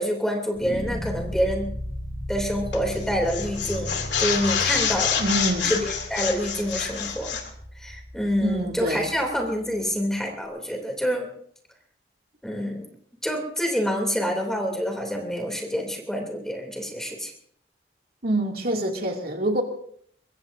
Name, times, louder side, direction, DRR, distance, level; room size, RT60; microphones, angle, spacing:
voice 1, 0.0-1.7 2.3-5.2 5.6-7.4 7.8-11.3 12.4-12.9 13.2-17.3, equal, 5° left, 2 dB, 3.0 m, -27 dB
sound 1, 0.5-9.7, equal, 30° left, 3.7 m, -36 dB
sound 2, 2.7-3.0 3.3-7.5, left 7 dB, 75° left, 2.7 m, -27 dB
voice 2, 5.2-5.8 8.4-9.1 18.2-19.6, right 1 dB, 55° right, 1 dB, 2.5 m, -26 dB
23.0 x 23.0 x 2.7 m, 0.63 s
head